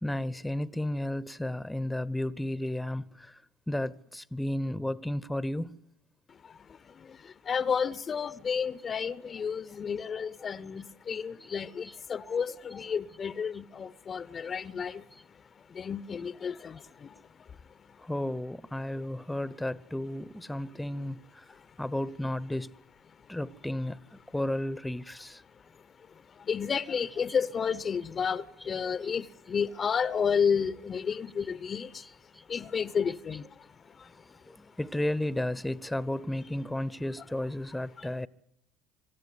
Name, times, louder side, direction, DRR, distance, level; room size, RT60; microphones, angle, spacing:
voice 1, 0.0-3.0 3.7-5.7 11.8-12.0 18.1-21.4 21.8-22.7 23.3-25.4 27.3-27.4 29.0-29.1 34.8-38.3, left 1 dB, 5° left, 0.9 m, -33 dB
voice 2, 6.3-18.1 21.5-21.8 23.1-23.3 25.5-34.7 38.0-38.1, left 6 dB, 40° left, 0.8 m, -32 dB
25.5 x 14.5 x 9.7 m
hypercardioid pair, 70°, 0 cm